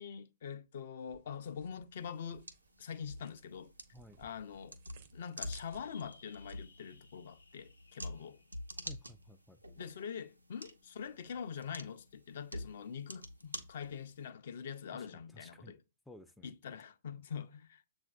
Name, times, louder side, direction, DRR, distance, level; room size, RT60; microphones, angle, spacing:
voice 1, 0.0-2.5 2.8-3.7 4.2-4.8 5.1-8.4 9.8-15.8 16.4-17.9, left 7 dB, 55° left, 0.5 m, -44 dB
sound 1, 1.0-6.2, right 7 dB, 45° right, 0.6 m, -62 dB
sound 2, 1.9-14.3, equal, 90° right, 0.7 m, -49 dB
sound 3, 5.5-10.2, left 4 dB, 80° left, 0.9 m, -64 dB
voice 2, 8.8-9.6 14.9-15.7 16.1-16.5, left 1 dB, 5° left, 0.3 m, -55 dB
7.2 x 2.6 x 2.3 m
figure-of-eight pair, 115°, 0 cm